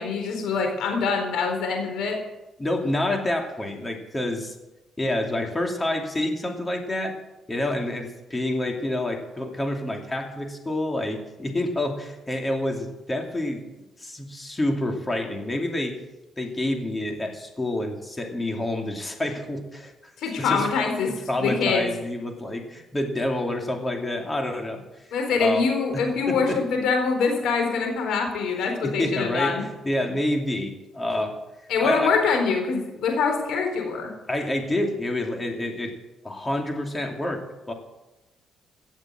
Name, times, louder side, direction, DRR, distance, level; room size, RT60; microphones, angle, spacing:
voice 1, 0.0-2.2 20.2-21.9 25.1-29.6 31.7-34.1, left 5 dB, 80° left, 3 dB, 4.1 m, -24 dB
voice 2, 2.6-4.5 5.0-7.2 7.5-13.7 14.0-16.0 16.4-19.9 20.4-20.7 21.1-24.8 25.4-25.7 26.3-26.6 28.8-31.4 31.8-32.1 34.3-35.9 36.2-37.7, left 1 dB, 20° left, 3 dB, 2.7 m, -28 dB
17.0 x 7.4 x 7.7 m, 1.0 s
cardioid pair, 90°, 0 cm